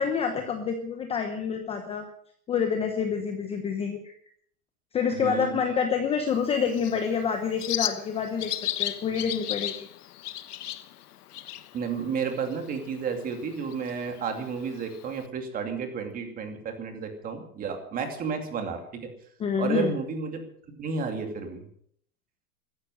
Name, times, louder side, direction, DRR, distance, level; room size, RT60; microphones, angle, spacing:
voice 1, 0.0-2.0 2.5-4.1 4.9-8.5 8.8-9.9 19.4-19.9, left 6 dB, 15° left, 5 dB, 1.0 m, -27 dB
voice 2, 5.2-5.6 11.7-19.1 19.6-20.4 20.8-21.6, right 5 dB, 20° right, 5 dB, 2.5 m, -32 dB
Bird, 6.3-15.3, left 12 dB, 85° left, 1.2 m, -36 dB
15.5 x 13.0 x 6.4 m, 0.64 s
supercardioid pair, 160°, 45 cm